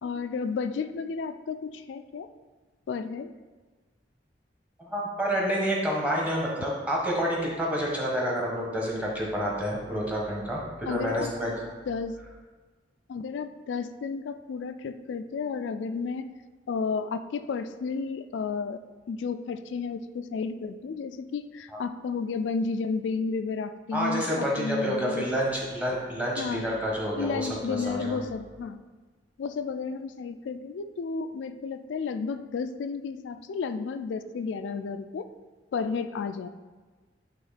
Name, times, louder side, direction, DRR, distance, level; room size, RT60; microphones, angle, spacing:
voice 1, 0.0-2.3 2.9-3.3 10.9-11.3 11.9-12.2 13.1-16.3 16.7-18.8 19.1-25.3 26.4-26.7 27.1-28.8 29.4-35.3 35.7-36.5, left 5 dB, 90° left, 10 dB, 0.3 m, -32 dB
voice 2, 4.8-11.5 23.9-28.3, equal, 10° right, -3 dB, 1.3 m, -29 dB
8.6 x 3.0 x 4.1 m, 1.3 s
head